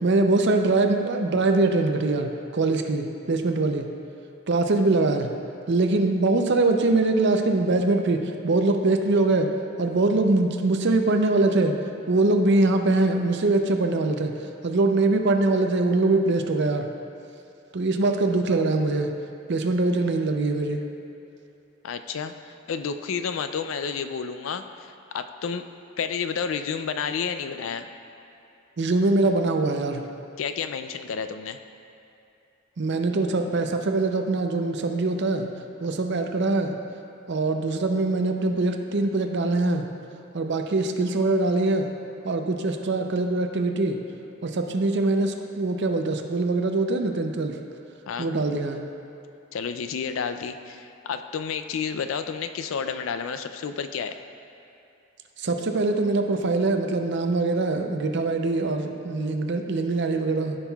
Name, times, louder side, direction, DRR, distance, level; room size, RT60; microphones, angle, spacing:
voice 1, 0.0-3.9 4.5-5.3 5.7-9.5 9.8-11.7 12.1-14.3 14.6-16.9 17.7-19.1 19.5-20.8 28.8-30.0 32.8-35.5 35.8-36.8 37.3-39.9 40.3-41.9 42.2-44.0 44.4-47.6 48.2-48.8 55.4-60.6, right 2 dB, 55° right, 5 dB, 0.5 m, -23 dB
voice 2, 21.8-25.6 26.0-27.9 30.4-31.6 48.1-48.3 49.5-54.2, left 6 dB, 70° left, 9 dB, 0.4 m, -30 dB
14.5 x 5.5 x 2.3 m, 2.8 s
head